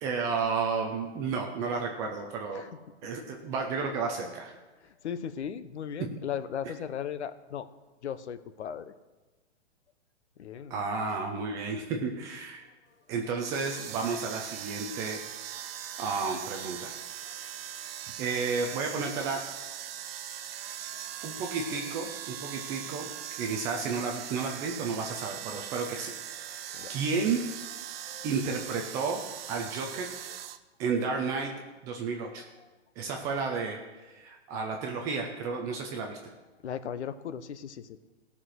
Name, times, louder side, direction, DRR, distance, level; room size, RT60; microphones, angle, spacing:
voice 1, 0.0-2.6 3.0-4.5 10.7-12.6 13.1-15.2 16.0-16.9 18.2-19.4 21.2-23.1 23.4-26.1 26.5-26.6 26.9-27.4 28.2-29.2 29.5-30.1 30.8-31.5 31.8-32.4 33.0-36.2, right 4 dB, 10° right, 2 dB, 0.3 m, -32 dB
voice 2, 2.5-3.0 4.8-7.7 8.0-8.9 10.4-10.8 17.2-17.4 20.9-21.2 24.2-24.3 26.4-27.0 28.0-28.3 30.3-30.4 32.3-32.7 33.2-33.3 36.6-38.0, left 8 dB, 75° left, 12 dB, 1.0 m, -38 dB
sound 1, 13.3-30.6, right 10 dB, 55° right, 0.8 m, -40 dB
16.5 x 5.9 x 6.3 m, 1.2 s
hypercardioid pair, 145°, 34 cm